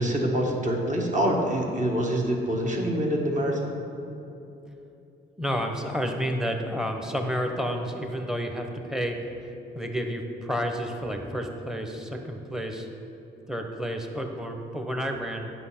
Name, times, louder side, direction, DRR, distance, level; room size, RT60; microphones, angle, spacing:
voice 1, 0.0-3.8, equal, 40° right, 0 dB, 1.5 m, -25 dB
voice 2, 5.4-9.4 9.7-12.9 13.5-15.5, equal, 5° right, 4 dB, 0.9 m, -30 dB
9.1 x 5.6 x 4.3 m, 2.8 s
cardioid pair, 90°, 20 cm